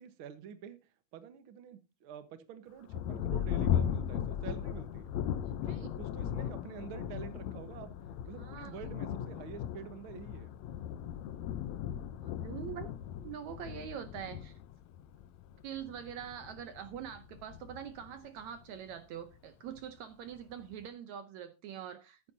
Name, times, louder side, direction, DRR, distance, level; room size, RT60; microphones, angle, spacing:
voice 1, 0.0-5.2 5.7-7.9 8.2-10.5, right 8 dB, 55° right, 1.6 m, -47 dB
Thunder, 2.9-19.0 19.7-19.8 20.4-20.8, left 10 dB, 75° left, 1.7 m, -37 dB
voice 2, 5.4-5.9 8.4-8.8 12.1-12.9 13.2-14.5 15.6-22.2, right 9 dB, 70° right, 1.9 m, -44 dB
14.0 x 11.0 x 2.8 m
omnidirectional pair, 3.7 m